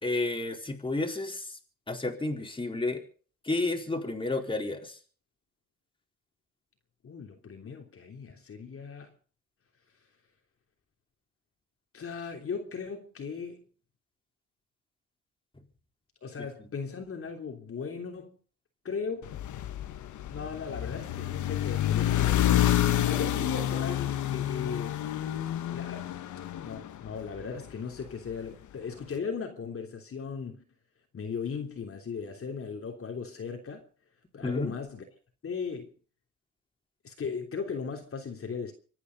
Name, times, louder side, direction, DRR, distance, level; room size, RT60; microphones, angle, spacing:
voice 1, 0.0-1.6 1.9-3.0 3.4-5.0 16.4-16.5 34.4-34.7, left 2 dB, 15° left, 4.3 m, -31 dB
voice 2, 7.0-9.1 11.9-13.6 16.2-18.4 18.8-19.3 20.3-22.7 23.0-25.0 25.7-26.1 26.6-30.6 31.1-33.8 34.3-35.1 35.4-35.9 37.0-38.7, left 5 dB, 45° left, 3.3 m, -37 dB
sound 1, 19.2-27.6, left 12 dB, 75° left, 1.6 m, -28 dB
25.5 x 9.9 x 5.3 m
cardioid pair, 90°, 30 cm